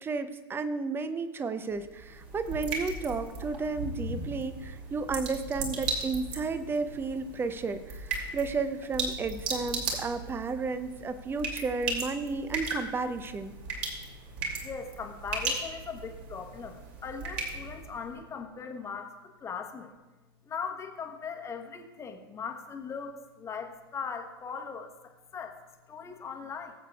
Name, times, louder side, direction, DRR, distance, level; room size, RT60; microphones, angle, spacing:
voice 1, 0.0-13.5, right 4 dB, 15° right, 11 dB, 0.7 m, -33 dB
sound 1, 1.7-18.2, right 3 dB, 45° right, 2.6 m, -37 dB
voice 2, 14.6-19.9 20.5-25.6 25.9-26.7, left 5 dB, 20° left, 4 dB, 1.2 m, -39 dB
19.5 x 8.2 x 2.4 m, 1.2 s
figure-of-eight pair, 90°, 13 cm